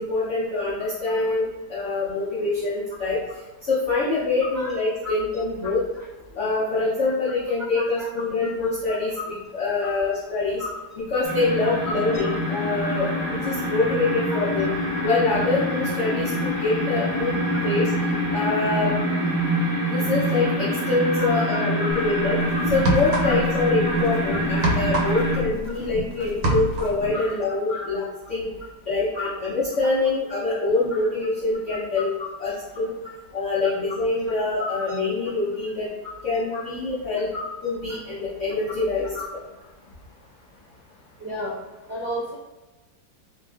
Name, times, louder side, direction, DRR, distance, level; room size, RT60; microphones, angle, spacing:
voice 1, 0.0-3.2 3.6-5.8 6.3-9.1 9.5-10.6 11.1-14.7 15.0-17.9 18.3-18.9 19.8-22.4 22.7-28.5 28.9-32.1 32.4-32.9 33.3-35.9 36.2-37.3 37.6-39.1, left 3 dB, 70° left, -9 dB, 0.7 m, -25 dB
voice 2, 7.7-8.1 8.4-9.0 10.6-10.7 11.6-11.7 12.2-12.3 12.8-13.0 21.2-22.0 22.5-22.6 23.2-23.3 23.8-24.0 24.3-24.4 27.1-27.3 27.7-27.9 29.1-29.3 30.3-30.5 30.9-31.0 32.2-32.3 34.6-34.9 36.5-36.6 37.3-37.4 37.9-38.0 39.1-39.2 41.2-41.6 41.9-42.3, left 2 dB, 45° right, -10 dB, 0.8 m, -33 dB
sound 1, 11.2-25.4, equal, 30° left, 0.5 m, -25 dB
sound 2, 21.9-22.1 22.7-23.6 23.9-26.0 26.3-27.0, right 1 dB, 85° right, 1.3 m, -25 dB
sound 3, 22.4-27.3, left 2 dB, 90° left, 1.3 m, -35 dB
2.9 x 2.4 x 2.3 m, 1.2 s
omnidirectional pair, 2.0 m